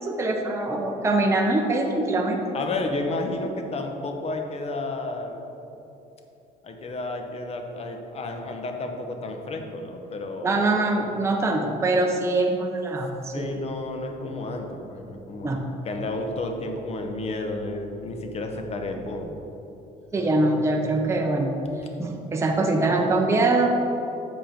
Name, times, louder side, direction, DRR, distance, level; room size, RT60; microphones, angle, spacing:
voice 1, 0.0-2.4 10.4-13.6 15.4-15.6 20.1-21.5 22.0-23.7, right 2 dB, 15° right, 1 dB, 0.7 m, -23 dB
voice 2, 2.5-5.4 5.7-5.8 6.6-10.6 13.3-15.6 15.8-19.3, left 2 dB, 40° left, 4 dB, 0.9 m, -31 dB
7.3 x 5.0 x 5.1 m, 3.0 s
cardioid pair, 110°, 17 cm